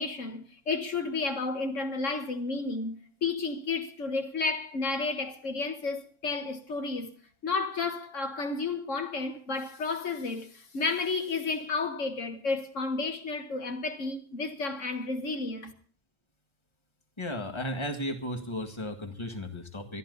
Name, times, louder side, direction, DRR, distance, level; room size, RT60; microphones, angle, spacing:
voice 1, 0.0-7.1 7.4-15.7, left 3 dB, 75° left, 1.8 m, -32 dB
voice 2, 17.2-20.0, left 1 dB, 20° left, 1.9 m, -35 dB
22.0 x 13.0 x 4.0 m
omnidirectional pair, 1.3 m